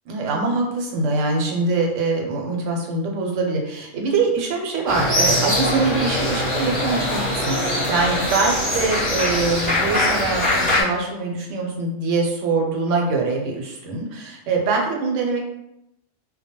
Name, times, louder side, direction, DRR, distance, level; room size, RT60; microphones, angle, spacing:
voice 1, 0.1-15.4, right 3 dB, 75° right, 1 dB, 0.9 m, -23 dB
sound 1, 4.9-10.8, left 1 dB, 10° left, 0.8 m, -22 dB
2.2 x 2.1 x 2.9 m, 0.84 s
omnidirectional pair, 1.3 m